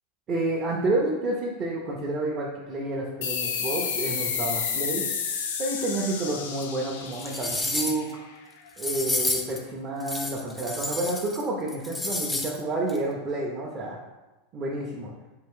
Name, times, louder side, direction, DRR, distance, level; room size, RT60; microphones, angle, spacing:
voice 1, 0.3-5.0 5.6-8.2 8.8-14.0 14.5-15.1, right 2 dB, 35° right, -3 dB, 0.6 m, -29 dB
sound 1, 3.2-8.4, left 6 dB, 85° left, 0.5 m, -31 dB
sound 2, 6.6-6.7 7.1-8.1 8.8-9.6 10.0-11.4 11.7-12.6 12.9-13.0, left 2 dB, 10° left, 0.4 m, -30 dB
4.4 x 2.4 x 3.6 m, 1.1 s
supercardioid pair, 125°, 0 cm